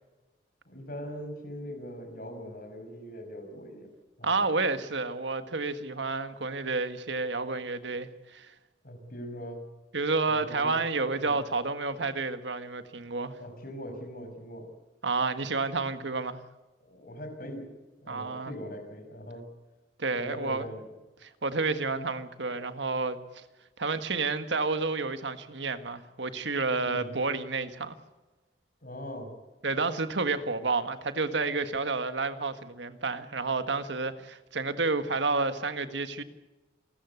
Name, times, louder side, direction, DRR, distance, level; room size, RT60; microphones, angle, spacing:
voice 1, 0.7-3.9 4.2-4.4 8.8-9.6 10.3-10.9 11.1-11.4 13.4-14.7 16.8-17.8 18.0-19.5 20.1-20.9 26.8-27.1 28.8-29.3, equal, 50° left, 5.6 m, -41 dB
voice 2, 4.2-8.5 9.9-13.4 15.0-16.4 18.1-18.5 20.0-20.6 21.2-23.4 23.8-27.9 29.6-36.2, right 3 dB, 80° right, 1.7 m, -30 dB
28.0 x 14.5 x 8.1 m
head